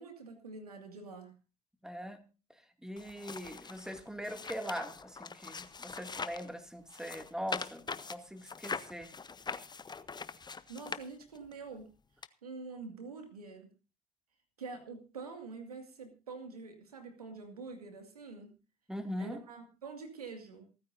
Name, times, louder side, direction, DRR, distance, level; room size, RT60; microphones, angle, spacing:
voice 1, 0.0-1.3 10.5-11.9 12.4-13.7 14.6-18.6 19.2-20.6, right 4 dB, 90° right, 6 dB, 2.2 m, -46 dB
voice 2, 1.8-2.2 2.8-9.1 18.9-19.4, equal, 5° right, 7 dB, 2.4 m, -41 dB
sound 1, 3.0-6.5 6.9-11.5 12.2-12.3, left 5 dB, 25° left, 0.9 m, -42 dB
27.5 x 9.5 x 2.7 m, 0.33 s
hypercardioid pair, 55°, 19 cm